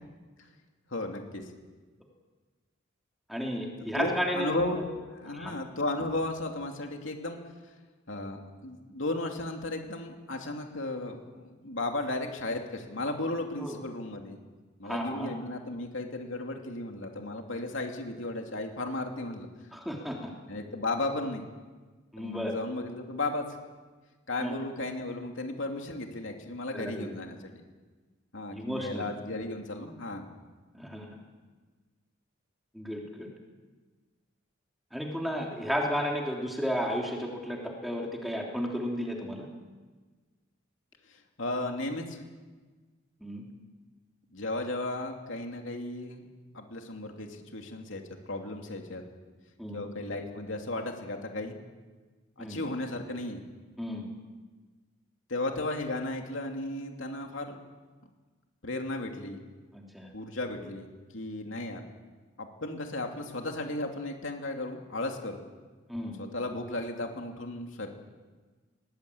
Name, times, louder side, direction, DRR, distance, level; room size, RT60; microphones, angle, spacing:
voice 1, 0.9-1.4 3.9-4.8 5.1-7.4 8.1-14.4 14.8-19.5 20.5-21.4 22.2-23.5 24.3-27.6 28.3-30.3 41.1-42.2 44.3-46.3 46.5-49.0 49.7-51.5 52.4-53.4 55.3-57.6 58.6-59.4 60.1-60.9 61.1-61.8 62.4-65.4 66.2-67.9, left 2 dB, 70° left, 3 dB, 2.8 m, -35 dB
voice 2, 3.3-4.8 5.3-5.6 13.6-13.8 14.8-15.3 19.7-20.3 22.1-22.5 24.4-24.6 26.7-27.1 28.5-29.0 30.7-31.1 32.7-33.3 34.9-39.5 43.2-43.4 49.6-49.8 52.4-52.6 53.8-54.0 59.7-60.1 65.9-66.1, equal, ahead, -1 dB, 3.3 m, -33 dB
21.5 x 19.5 x 8.6 m, 1.3 s
head